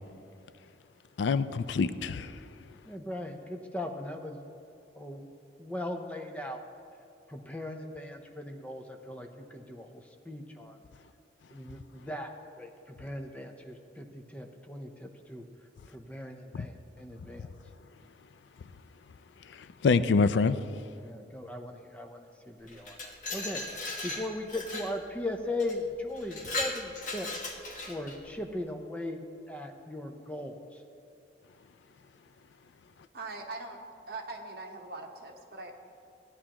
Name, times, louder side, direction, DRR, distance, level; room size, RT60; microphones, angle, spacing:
voice 1, 1.2-2.3 19.5-20.6, left 4 dB, 75° left, 13 dB, 0.4 m, -26 dB
voice 2, 2.8-4.4 5.0-5.3 5.6-6.6 7.3-10.8 11.5-15.4 15.9-17.5 21.0-23.6 24.0-27.3 27.9-30.6, left 1 dB, 5° left, 4 dB, 0.6 m, -38 dB
Glass, 22.7-24.9 25.6-25.8 26.2-28.2, left 2 dB, 45° left, 1.3 m, -37 dB
voice 3, 33.1-33.8 34.1-35.7, right 3 dB, 55° right, 2 dB, 1.1 m, -41 dB
16.0 x 9.8 x 3.0 m, 2.6 s
head